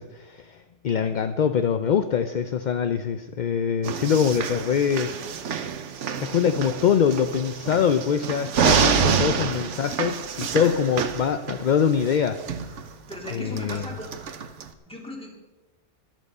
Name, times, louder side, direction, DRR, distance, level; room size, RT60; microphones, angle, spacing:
voice 1, 0.0-5.1 6.2-12.4 13.3-13.8, left 7 dB, 50° left, 9 dB, 0.6 m, -24 dB
Corridor Recording, 3.8-14.7, right 7 dB, 75° right, 1.2 m, -27 dB
voice 2, 9.1-9.4 10.4-10.7 13.1-14.2 14.9-15.3, left 2 dB, 5° left, 0 dB, 2.6 m, -37 dB
13.5 x 12.0 x 5.5 m, 1.2 s
omnidirectional pair, 1.3 m